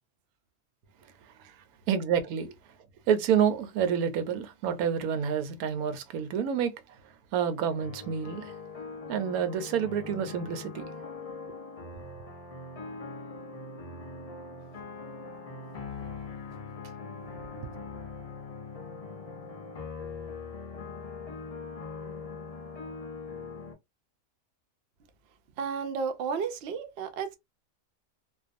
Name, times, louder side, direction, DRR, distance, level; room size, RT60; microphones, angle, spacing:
voice 1, 1.9-2.5 3.1-6.7 7.3-8.5 9.1-11.1, right 8 dB, 85° right, 1.1 m, -28 dB
sound 1, 7.8-23.7, left 4 dB, 50° left, 0.4 m, -41 dB
voice 2, 17.2-17.8 25.6-27.4, right 6 dB, 65° right, 0.6 m, -34 dB
2.5 x 2.2 x 2.5 m
omnidirectional pair, 1.5 m